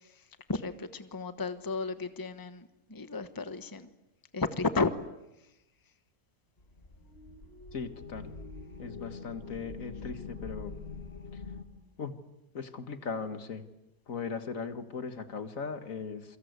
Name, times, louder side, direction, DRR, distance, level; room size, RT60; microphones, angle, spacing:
voice 1, 0.5-3.9 4.3-4.9, left 3 dB, 15° left, 11 dB, 1.2 m, -33 dB
sound 1, 6.6-11.6, left 4 dB, 45° left, 2.5 m, -44 dB
voice 2, 7.7-8.3 8.8-10.8 11.3-11.4 12.0-12.2 12.5-13.7 14.1-16.4, left 5 dB, 65° left, 10 dB, 2.0 m, -38 dB
28.0 x 24.0 x 8.2 m, 0.92 s
omnidirectional pair, 1.5 m